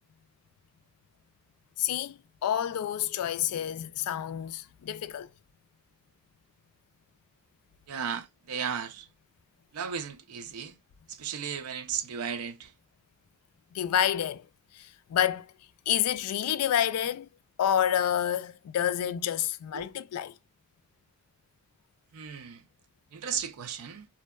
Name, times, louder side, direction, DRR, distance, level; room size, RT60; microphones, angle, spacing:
voice 1, 1.8-5.3 13.7-14.5 14.7-15.5 15.9-17.3 17.6-20.3, left 10 dB, 85° left, 0.3 m, -28 dB
voice 2, 7.9-9.1 9.7-10.8 11.1-12.7 19.7-19.9 22.1-22.6 23.1-24.1, right 7 dB, 80° right, 0.5 m, -35 dB
2.6 x 2.1 x 2.2 m
head